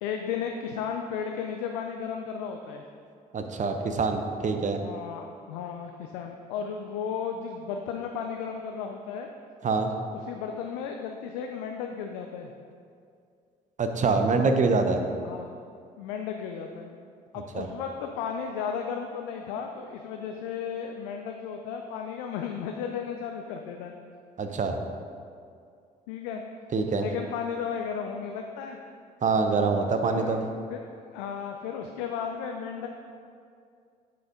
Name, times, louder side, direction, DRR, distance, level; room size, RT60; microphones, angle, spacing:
voice 1, 0.0-2.8 4.8-9.3 10.1-12.5 15.2-15.5 16.0-16.9 17.3-23.9 26.1-26.4 26.9-28.8 30.0-30.4 30.7-30.8 31.1-32.9, left 7 dB, 75° left, 4 dB, 0.5 m, -34 dB
voice 2, 3.3-4.8 9.6-9.9 13.8-15.0 17.5-17.7 24.4-24.8 26.7-27.1 29.2-30.4, right 4 dB, 35° right, 6 dB, 0.8 m, -25 dB
7.5 x 5.7 x 3.8 m, 2.3 s
hypercardioid pair, 50°, 21 cm